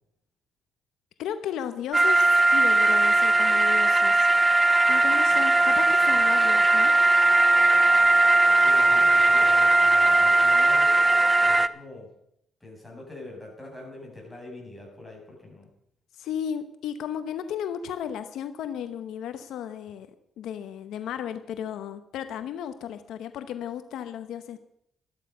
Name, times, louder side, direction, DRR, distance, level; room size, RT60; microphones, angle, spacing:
voice 1, 1.2-4.3 4.9-6.9 16.2-20.1 20.4-24.6, left 9 dB, 80° left, 10 dB, 0.9 m, -34 dB
sound 1, 1.9-11.7, right 2 dB, 15° right, 0.6 m, -19 dB
voice 2, 8.6-10.9 11.4-12.1 12.6-15.7, left 2 dB, 5° left, -2 dB, 7.4 m, -44 dB
13.5 x 12.5 x 5.5 m, 0.75 s
cardioid pair, 90°, 0 cm